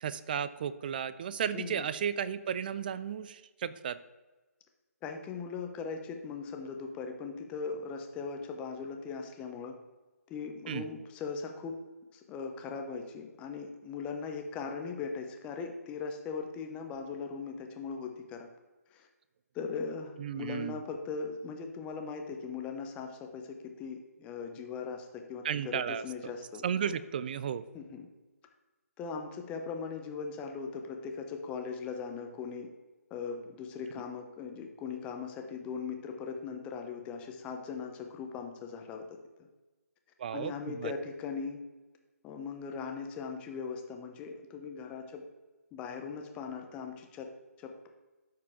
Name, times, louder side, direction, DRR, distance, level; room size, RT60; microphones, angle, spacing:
voice 1, 0.0-4.0 10.7-10.9 20.2-20.8 25.4-26.3 26.6-27.6 40.2-40.9, right 8 dB, 35° right, 15 dB, 0.4 m, -34 dB
voice 2, 1.5-1.9 5.0-9.8 10.3-11.8 12.1-18.5 18.9-19.1 19.5-26.9 27.7-28.1 29.0-32.7 33.1-39.0 39.4-39.5 40.3-41.6 42.2-45.2 45.7-47.3 47.6-47.9, left 5 dB, 15° left, 4 dB, 0.7 m, -39 dB
13.0 x 4.7 x 3.6 m, 1.2 s
figure-of-eight pair, 150°, 9 cm